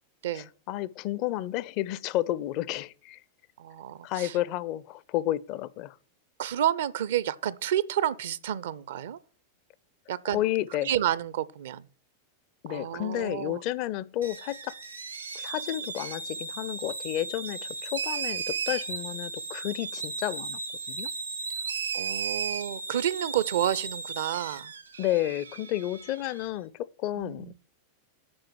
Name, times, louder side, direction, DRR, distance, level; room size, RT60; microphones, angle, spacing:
voice 1, 0.3-3.2 4.0-6.0 10.3-10.9 12.6-14.8 15.3-20.6 20.9-21.1 25.0-27.5, left 14 dB, 45° left, 0.5 m, -31 dB
voice 2, 3.6-4.4 6.4-9.2 10.1-10.4 10.8-11.8 12.7-13.6 21.9-24.7 27.2-27.5, right 11 dB, 60° right, 0.6 m, -30 dB
sound 1, 14.2-26.5, right 5 dB, 80° right, 1.5 m, -35 dB
8.7 x 5.0 x 7.5 m
figure-of-eight pair, 90°, 0 cm